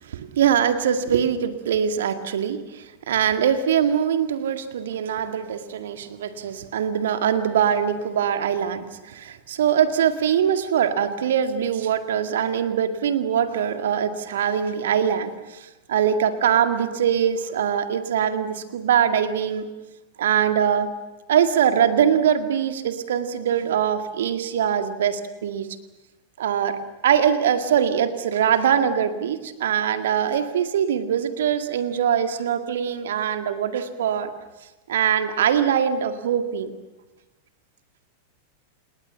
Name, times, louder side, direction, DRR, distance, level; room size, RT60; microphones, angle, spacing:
voice 1, 0.1-19.7 20.2-20.9 21.3-25.7 26.4-26.8 27.0-34.3 34.9-36.7, right 8 dB, 60° right, 9 dB, 1.9 m, -22 dB
29.0 x 19.0 x 7.2 m, 1.1 s
figure-of-eight pair, 90°, 0 cm